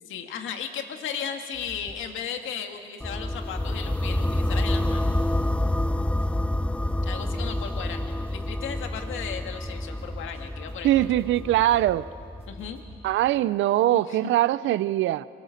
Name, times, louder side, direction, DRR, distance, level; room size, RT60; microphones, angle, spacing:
voice 1, 0.1-5.2 7.0-11.0 12.5-12.8 13.9-14.3, left 7 dB, 80° left, 5 dB, 1.8 m, -36 dB
sound 1, 1.5-2.4 2.7-3.6 3.9-6.3 6.7-9.1 9.5-13.1, right 1 dB, 30° right, 3.7 m, -48 dB
sound 2, 3.0-12.9, left 1 dB, 5° left, 0.5 m, -28 dB
voice 2, 10.8-12.1 13.0-15.3, right 14 dB, 75° right, 17 dB, 0.5 m, -22 dB
25.0 x 18.5 x 6.5 m, 2.2 s
cardioid pair, 90°, 20 cm